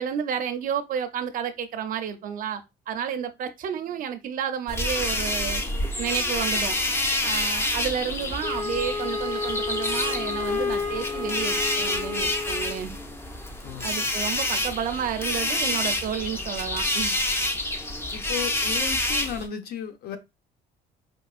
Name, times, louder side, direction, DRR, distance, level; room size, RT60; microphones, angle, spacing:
voice 1, 0.0-5.6 6.0-6.8 7.2-13.0 13.8-17.2, right 8 dB, 55° right, 0.6 m, -31 dB
sound 1, 4.7-19.5, left 1 dB, 15° left, 0.5 m, -28 dB
Wind instrument woodwind instrument, 8.4-12.8, left 4 dB, 40° left, 0.9 m, -30 dB
voice 2, 13.6-14.1 18.1-20.2, left 8 dB, 65° left, 0.7 m, -35 dB
4.5 x 2.3 x 2.4 m
cardioid pair, 110°, 17 cm